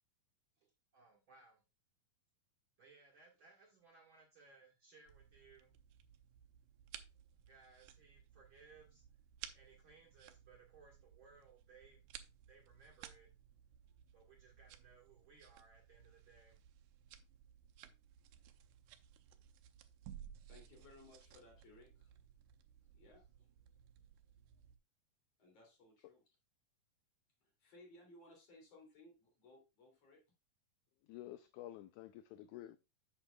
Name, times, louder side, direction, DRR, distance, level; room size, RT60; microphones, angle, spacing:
voice 1, 0.6-1.6 2.8-5.7 7.5-9.0 9.5-12.1 12.5-13.3 14.1-16.6, right 4 dB, 45° right, 1.9 m, -64 dB
sound 1, 5.1-24.8, right 10 dB, 80° right, 2.2 m, -58 dB
voice 2, 20.4-22.2 22.8-23.5 25.4-26.2 27.4-30.2, left 2 dB, 50° left, 3.8 m, -62 dB
voice 3, 31.0-32.8, left 14 dB, 80° left, 1.8 m, -50 dB
8.7 x 7.6 x 2.3 m
omnidirectional pair, 3.7 m